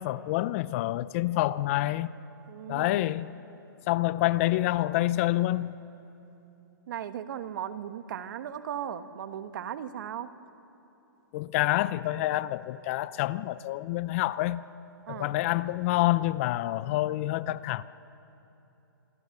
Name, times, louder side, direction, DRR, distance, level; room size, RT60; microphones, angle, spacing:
voice 1, 0.0-2.1 2.7-3.3 3.9-5.8 11.3-14.6 15.1-17.8, left 16 dB, 35° left, 0.6 m, -27 dB
voice 2, 2.5-3.1 6.9-10.3 15.1-15.3, right 9 dB, 60° right, 1.4 m, -37 dB
27.0 x 23.0 x 6.8 m
hypercardioid pair, 145°, 12 cm